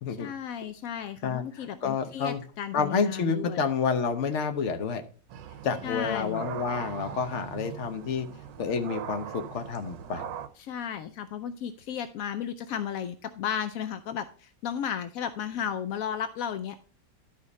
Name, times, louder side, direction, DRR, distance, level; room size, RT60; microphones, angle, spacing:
voice 1, 0.2-3.6 5.8-6.5 10.6-16.8, left 8 dB, 75° left, 10 dB, 0.7 m, -34 dB
voice 2, 1.2-2.4 2.7-5.0 5.6-8.3 8.6-10.3, left 6 dB, 50° left, 8 dB, 0.9 m, -29 dB
sound 1, 5.3-10.5, right 9 dB, 75° right, 1.4 m, -40 dB
12.0 x 5.2 x 4.0 m, 0.40 s
omnidirectional pair, 2.0 m